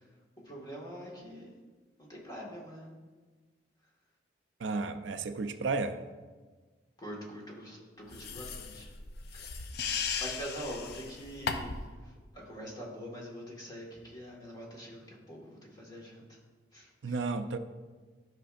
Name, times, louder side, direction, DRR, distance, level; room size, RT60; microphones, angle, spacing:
voice 1, 0.5-1.5 2.0-2.9 7.0-8.9 9.3-9.7 10.2-11.8 12.3-16.2 16.7-16.9, equal, 25° left, -3 dB, 1.8 m, -44 dB
voice 2, 4.6-6.0 17.0-17.6, right 3 dB, 90° right, 9 dB, 0.5 m, -33 dB
sound 1, 8.1-11.9, left 5 dB, 60° left, 0.6 m, -37 dB
12.5 x 6.0 x 2.5 m, 1.4 s
head